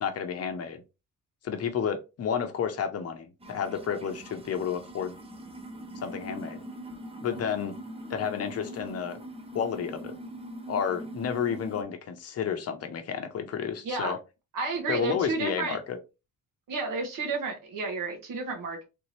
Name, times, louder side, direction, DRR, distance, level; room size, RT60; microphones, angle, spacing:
voice 1, 0.0-0.8 1.4-5.2 6.0-6.6 7.2-7.8 8.1-9.2 9.5-10.2 10.7-14.2 14.9-16.0, left 7 dB, 50° left, 0.7 m, -31 dB
sound 1, 3.4-11.8, right 1 dB, 20° right, 0.6 m, -42 dB
voice 2, 14.5-15.8 16.7-18.8, right 3 dB, 85° right, 1.4 m, -31 dB
3.4 x 2.9 x 3.2 m
cardioid pair, 150°, 32 cm